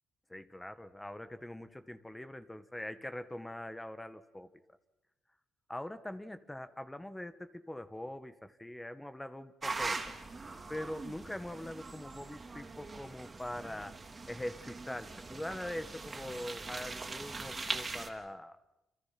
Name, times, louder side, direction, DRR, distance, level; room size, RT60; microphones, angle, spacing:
voice 1, 0.3-4.5 5.7-10.1 10.7-14.0 14.3-18.6, left 1 dB, 10° left, 10 dB, 1.7 m, -43 dB
sound 1, 9.6-18.1, right 3 dB, 30° right, 3.5 m, -41 dB
29.5 x 27.5 x 6.1 m, 0.94 s
cardioid pair, 90°, 0 cm